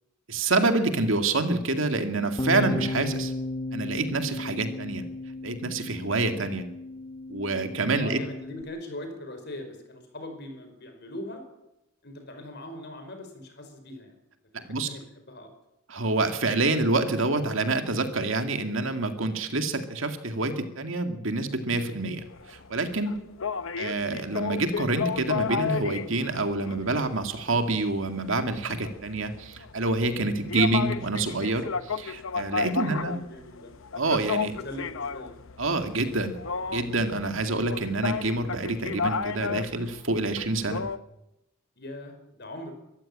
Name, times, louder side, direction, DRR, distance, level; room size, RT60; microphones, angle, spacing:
voice 1, 0.3-3.3 3.7-5.1 5.4-6.6 7.3-8.2 14.5-14.9 15.9-23.2 23.8-33.2 34.0-34.6 35.6-36.3 36.7-40.8, right 2 dB, 65° right, 7 dB, 2.2 m, -27 dB
Bass guitar, 2.4-8.6, left 2 dB, 25° left, 1.2 m, -34 dB
voice 2, 8.0-11.4 12.0-14.2 14.5-15.5 23.6-23.9 32.6-33.7 34.4-35.3 41.8-42.7, left 1 dB, 50° left, 6 dB, 5.1 m, -41 dB
sound 1, 22.0-41.0, left 6 dB, 65° left, 0.8 m, -33 dB
23.5 x 14.5 x 8.7 m, 0.88 s
head